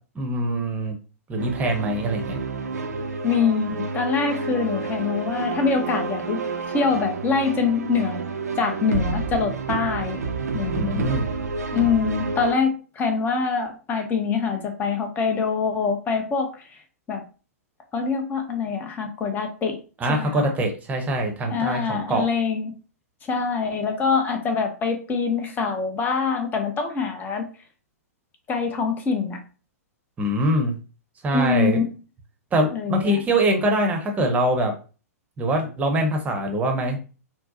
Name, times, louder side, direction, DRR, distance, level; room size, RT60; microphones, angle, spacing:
voice 1, 0.1-0.9 1.3-2.4 10.7-11.2 20.0-22.3 30.2-30.8 31.2-31.8 32.5-34.7 35.4-37.0, right 1 dB, 15° right, 3 dB, 0.8 m, -23 dB
sound 1, 1.4-12.5, right 4 dB, 80° right, 0.5 m, -29 dB
voice 2, 3.2-6.4 6.7-8.2 8.6-10.2 10.5-11.0 11.7-16.5 17.1-17.2 17.9-19.8 20.1-20.5 21.5-22.7 23.3-27.4 28.5-29.4 31.3-31.9 32.7-33.2, left 5 dB, 20° left, 4 dB, 0.7 m, -24 dB
4.4 x 2.1 x 2.7 m, 0.36 s
hypercardioid pair, 115°, 8 cm